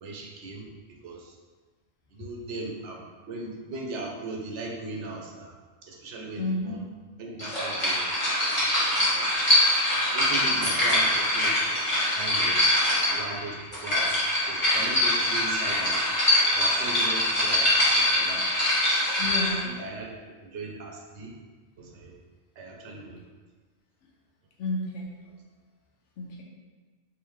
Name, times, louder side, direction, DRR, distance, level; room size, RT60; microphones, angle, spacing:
voice 1, 0.0-0.7 1.0-1.2 2.1-5.5 5.8-6.8 7.2-8.8 9.1-9.3 10.1-11.5 12.1-12.6 13.0-16.0 16.5-18.4 19.6-21.3 21.8-22.1 22.6-23.2, right 3 dB, 85° right, 0 dB, 0.9 m, -38 dB
voice 2, 6.4-6.8 10.4-10.7 19.2-19.7 24.6-25.1 26.2-26.4, left 2 dB, 85° left, -1 dB, 0.9 m, -31 dB
sound 1, 7.4-19.6, left 1 dB, 30° left, 1.1 m, -23 dB
3.5 x 2.8 x 3.1 m, 1.3 s
omnidirectional pair, 1.2 m